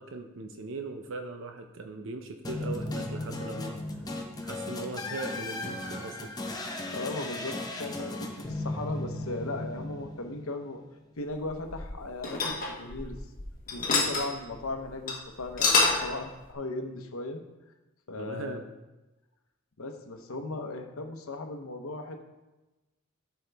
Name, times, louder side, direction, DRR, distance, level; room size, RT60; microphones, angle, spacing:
voice 1, 0.0-3.8 4.4-6.3 18.2-18.6, right 3 dB, 65° right, 5 dB, 0.6 m, -39 dB
sound 1, 2.4-10.7, left 2 dB, 20° left, 0.8 m, -36 dB
voice 2, 6.7-10.8 11.2-13.2 13.7-15.7 16.0-17.4 18.1-18.6 19.8-22.2, left 2 dB, 80° left, 5 dB, 0.9 m, -37 dB
sound 2, 11.4-13.4 13.7-14.3 14.6-14.7 15.1-15.2 15.4-16.1, left 4 dB, 40° left, 1.2 m, -26 dB
13.0 x 4.7 x 3.4 m, 1.1 s
head